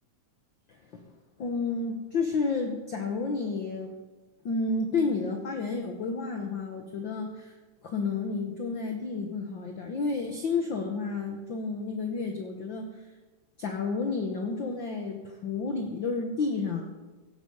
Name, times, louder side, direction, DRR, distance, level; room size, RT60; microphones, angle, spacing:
voice 1, 1.4-3.9 4.4-7.5 7.8-13.0 13.6-16.9, left 4 dB, 50° left, 4 dB, 1.6 m, -31 dB
17.0 x 13.0 x 5.5 m, 1.2 s
omnidirectional pair, 3.4 m